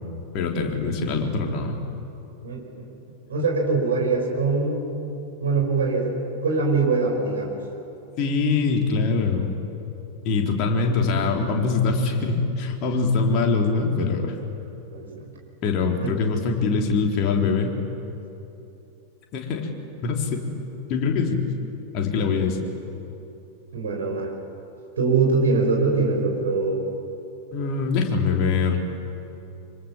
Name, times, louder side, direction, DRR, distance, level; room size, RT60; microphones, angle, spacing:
voice 1, 0.3-1.8 8.2-9.5 10.2-14.3 15.6-17.7 19.3-19.7 20.0-20.4 20.9-21.5 21.9-22.6 27.5-28.8, left 4 dB, 40° left, 2 dB, 3.7 m, -23 dB
voice 2, 2.4-2.8 3.3-4.8 5.4-6.1 6.4-7.5 14.9-15.3 16.0-16.1 23.7-24.3 25.0-26.9, right 4 dB, 65° right, 1 dB, 5.6 m, -23 dB
25.5 x 25.5 x 7.4 m, 2.8 s
figure-of-eight pair, 90°, 0 cm